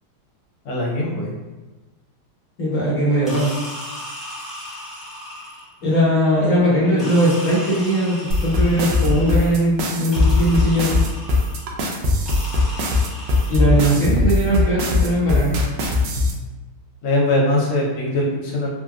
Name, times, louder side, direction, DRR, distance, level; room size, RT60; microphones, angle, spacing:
voice 1, 0.6-1.3 17.0-18.7, left 1 dB, 75° left, -3 dB, 1.6 m, -21 dB
voice 2, 2.6-3.6 5.8-8.2 8.4-10.9 13.5-15.5, equal, 50° left, -8 dB, 1.1 m, -19 dB
sound 1, 3.3-5.8 7.0-9.6 10.1-11.7 12.3-13.9, left 1 dB, ahead, 0.3 m, -36 dB
sound 2, 8.3-16.3, left 3 dB, 75° right, 1.0 m, -19 dB
3.8 x 2.2 x 2.3 m, 1.2 s
omnidirectional pair, 2.4 m